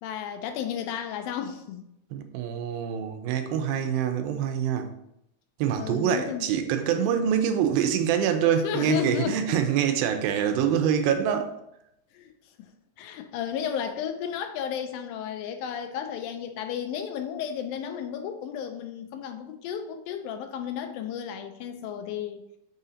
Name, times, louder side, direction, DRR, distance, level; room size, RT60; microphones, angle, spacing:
voice 1, 0.0-1.9 5.8-6.5 8.6-9.6 12.1-12.3 12.6-12.7 13.0-22.4, left 8 dB, 80° left, 2.2 m, -33 dB
voice 2, 2.1-4.9 5.6-11.5, right 8 dB, 85° right, 2.4 m, -25 dB
6.2 x 3.8 x 4.2 m
omnidirectional pair, 4.3 m